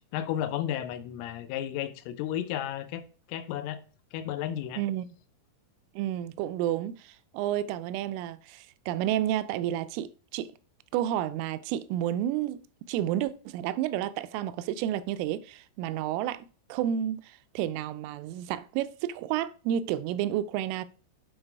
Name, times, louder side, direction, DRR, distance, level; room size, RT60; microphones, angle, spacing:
voice 1, 0.1-3.0 3.3-3.8 4.1-4.8, left 11 dB, 85° left, 3.2 m, -33 dB
voice 2, 4.8-5.1 6.0-10.5 10.9-12.6 12.9-17.2 17.6-20.9, right 11 dB, 85° right, 3.1 m, -30 dB
8.8 x 4.0 x 4.5 m
omnidirectional pair, 5.7 m